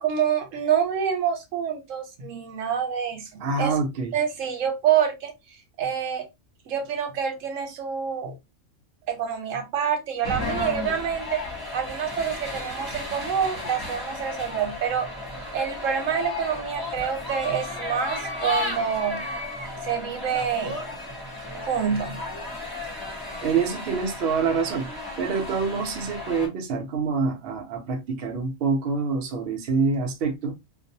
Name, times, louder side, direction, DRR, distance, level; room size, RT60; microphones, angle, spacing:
voice 1, 0.0-3.8 4.1-5.3 5.8-6.3 6.7-8.3 9.1-11.4 11.7-15.1 15.5-19.2 19.8-20.8 21.5-22.2, right 8 dB, 80° right, 1.1 m, -27 dB
voice 2, 3.4-4.1 23.4-24.9 25.2-30.5, right 5 dB, 55° right, 0.8 m, -26 dB
sound 1, 10.2-26.5, left 2 dB, 20° left, 0.7 m, -34 dB
2.5 x 2.0 x 2.6 m
omnidirectional pair, 1.3 m